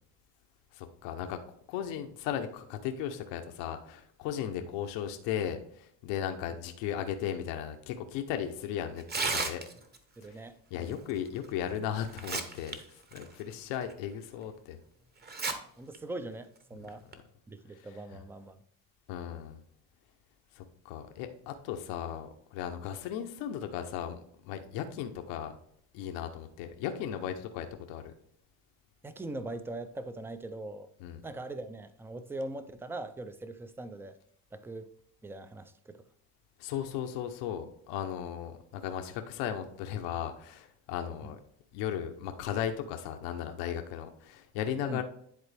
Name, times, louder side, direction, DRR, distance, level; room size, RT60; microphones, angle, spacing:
voice 1, 0.7-1.4 1.7-9.6 10.3-10.4 10.7-14.8 17.8-17.9 18.1-18.2 19.1-19.6 20.5-25.5 25.9-28.1 31.0-31.2 36.6-41.4 41.7-45.0, left 9 dB, 85° left, 6 dB, 1.0 m, -36 dB
Tearing, 9.0-10.0 11.4-11.5 12.0-12.8 13.1-13.2 13.9-14.0 15.2-15.5 15.9-16.0 16.9-17.1, right 3 dB, 25° right, 0.9 m, -33 dB
voice 2, 10.2-11.1 15.8-17.0 17.5-18.6 29.0-30.9 31.2-34.2 34.5-34.9 35.2-36.0 41.2-41.3 44.9-45.0, right 2 dB, 5° right, 11 dB, 0.3 m, -41 dB
10.5 x 4.0 x 3.4 m, 0.68 s
cardioid pair, 125°, 43 cm